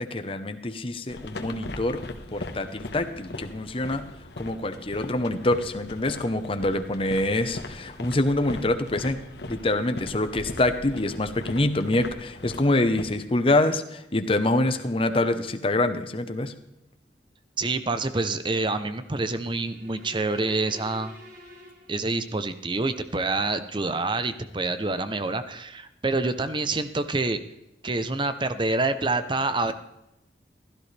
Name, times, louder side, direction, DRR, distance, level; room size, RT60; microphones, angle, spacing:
voice 1, 0.0-2.0 2.3-4.1 4.4-9.2 9.5-16.5, left 2 dB, 30° left, 8 dB, 0.9 m, -25 dB
sound 1, 1.1-13.0, left 2 dB, 70° left, 1.3 m, -39 dB
voice 2, 17.6-21.1 21.9-27.4 27.8-29.7, right 3 dB, 25° right, 11 dB, 0.7 m, -27 dB
sound 2, 19.6-22.5, left 1 dB, 50° right, 3.1 m, -47 dB
16.0 x 13.0 x 3.4 m, 0.87 s
head